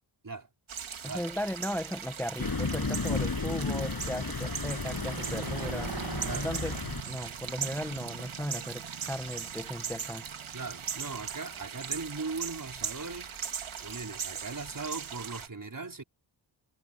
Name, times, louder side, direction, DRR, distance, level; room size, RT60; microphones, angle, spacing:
sound 1, 0.7-15.5, right 7 dB, 90° right, 3.5 m, -39 dB
voice 1, 1.0-6.8 7.0-10.2, equal, 5° left, 1.7 m, -37 dB
Thunder, 2.4-7.0, left 4 dB, 50° left, 7.4 m, -33 dB
Motorcycle, 4.2-12.3, right 7 dB, 70° right, 2.4 m, -44 dB
voice 2, 10.5-13.4 13.8-16.0, right 3 dB, 45° right, 5.4 m, -39 dB
cardioid pair, 50°, 47 cm